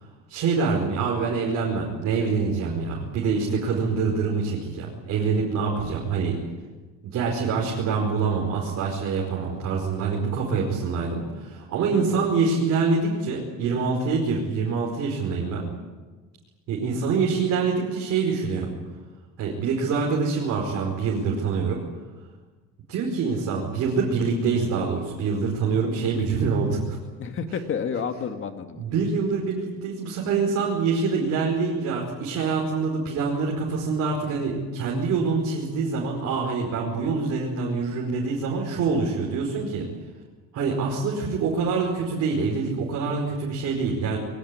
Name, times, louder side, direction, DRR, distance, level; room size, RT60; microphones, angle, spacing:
voice 1, 0.3-6.4 7.0-15.7 16.7-18.7 19.4-21.8 22.9-27.0 28.8-39.9 40.5-44.2, right 4 dB, 55° right, -1 dB, 5.0 m, -25 dB
voice 2, 11.9-12.3 27.2-28.9, left 6 dB, 40° left, 7 dB, 2.1 m, -30 dB
22.0 x 18.5 x 9.8 m, 1.3 s
cardioid pair, 145°, 32 cm